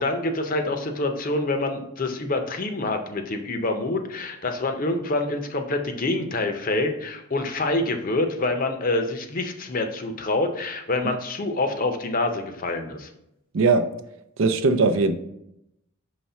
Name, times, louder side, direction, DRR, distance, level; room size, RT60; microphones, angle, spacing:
voice 1, 0.0-13.1, left 2 dB, 40° left, 6 dB, 0.6 m, -26 dB
voice 2, 13.5-13.9 14.4-15.1, right 3 dB, 70° right, 9 dB, 0.5 m, -19 dB
5.7 x 3.1 x 5.5 m, 0.82 s
head